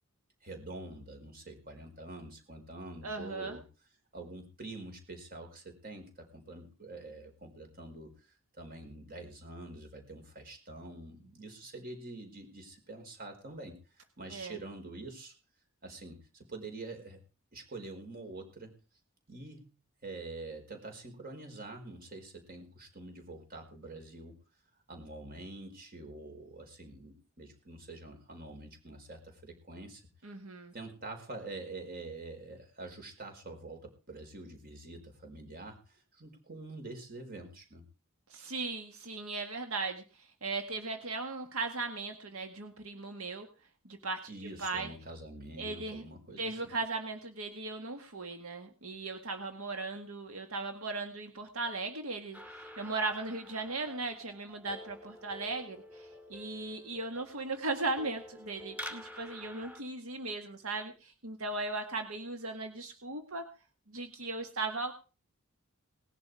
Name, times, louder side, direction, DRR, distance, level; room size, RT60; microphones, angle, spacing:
voice 1, 0.4-3.6 4.1-15.3 15.8-17.2 17.5-18.7 19.3-19.7 20.0-24.4 24.9-30.0 30.7-37.8 44.3-46.7, right 2 dB, 45° right, 4 dB, 4.8 m, -46 dB
voice 2, 3.0-3.6 14.3-14.6 30.2-30.7 38.3-43.5 43.9-44.3 44.6-44.9 45.6-46.1 46.4-63.4 63.9-64.9, right 3 dB, 85° right, 6 dB, 1.8 m, -37 dB
sound 1, 52.3-59.8, equal, 5° right, 2.0 m, -49 dB
19.0 x 11.0 x 4.9 m, 0.35 s
head